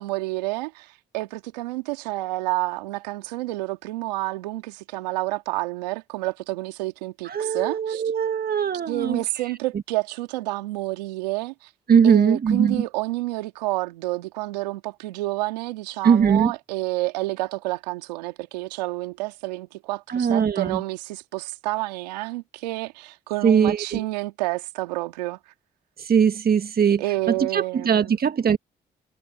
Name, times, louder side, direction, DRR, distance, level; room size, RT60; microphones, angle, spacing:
voice 1, 0.0-8.0 8.9-11.7 12.0-25.4 27.0-28.2, right 20 dB, 90° right, 2.4 m, -29 dB
voice 2, 7.3-9.2 11.9-12.8 16.0-16.5 20.1-20.8 23.4-24.0 26.0-27.0 27.4-28.6, right 7 dB, 50° right, 1.7 m, -20 dB
hypercardioid pair, 45°, 21 cm